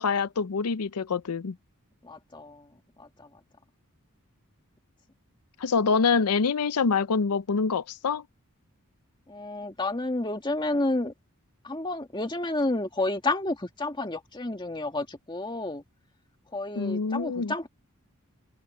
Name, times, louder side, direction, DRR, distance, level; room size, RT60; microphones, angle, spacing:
voice 1, 0.0-1.5 5.6-8.2 16.8-17.5, left 5 dB, 85° left, 0.6 m, -25 dB
voice 2, 2.0-2.7 3.0-3.3 9.3-11.1 11.6-15.8 16.5-17.7, left 2 dB, 20° left, 1.9 m, -30 dB
head